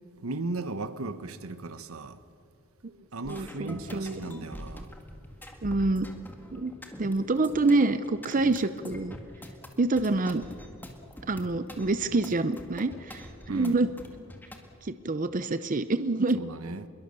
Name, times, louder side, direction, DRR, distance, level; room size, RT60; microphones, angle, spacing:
voice 1, 0.2-2.2 3.1-4.9 13.5-13.8 16.3-16.9, right 2 dB, 85° right, 1.1 m, -36 dB
sound 1, 3.2-14.6, left 1 dB, 10° left, 2.0 m, -44 dB
voice 2, 3.3-4.2 5.6-6.1 6.5-6.7 7.0-9.2 9.8-10.4 11.3-13.9 14.8-16.4, right 2 dB, 40° right, 0.6 m, -27 dB
25.5 x 22.0 x 6.8 m
head